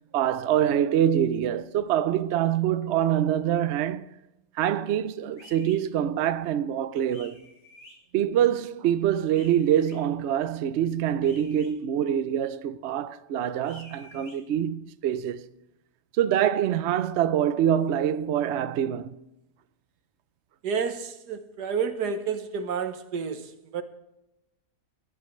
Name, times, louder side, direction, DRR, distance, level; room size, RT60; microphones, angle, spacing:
voice 1, 0.1-4.1 4.6-7.4 8.1-15.5 16.2-19.2, right 10 dB, 60° right, 0.7 m, -25 dB
sound 1, 5.3-5.8 7.1-7.9 9.3-10.0 11.2-11.7 13.6-14.4, left 2 dB, 70° left, 3.8 m, -50 dB
voice 2, 20.6-23.8, right 6 dB, 85° right, 1.6 m, -30 dB
21.5 x 11.5 x 3.1 m
omnidirectional pair, 1.7 m